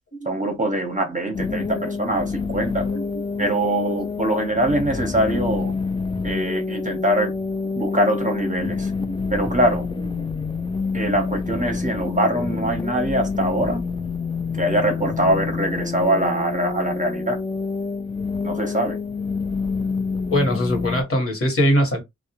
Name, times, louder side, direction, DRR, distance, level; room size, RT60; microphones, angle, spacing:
voice 1, 0.2-2.9 3.4-5.7 6.2-7.3 7.8-8.9 9.3-9.9 10.9-13.8 14.6-17.4 18.4-19.0, right 1 dB, 25° right, 0.7 m, -23 dB
sound 1, 1.3-21.0, left 4 dB, 15° left, 0.3 m, -27 dB
voice 2, 6.2-6.6 7.9-8.0 9.0-9.4 12.3-12.4 20.3-22.0, equal, 45° left, 1.0 m, -23 dB
2.3 x 2.1 x 2.8 m
wide cardioid pair, 65°, 30 cm